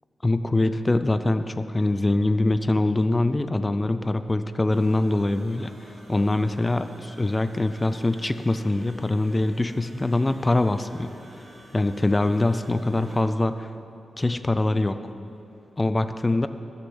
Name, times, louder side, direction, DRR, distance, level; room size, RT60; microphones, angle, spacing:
voice 1, 0.2-11.1 11.7-13.7 14.2-15.0 15.8-16.5, left 2 dB, 20° left, 11 dB, 0.5 m, -23 dB
sound 1, 4.7-13.2, right 1 dB, 75° right, 2.2 m, -50 dB
14.0 x 6.8 x 7.2 m, 2.7 s
wide cardioid pair, 125°, 0 cm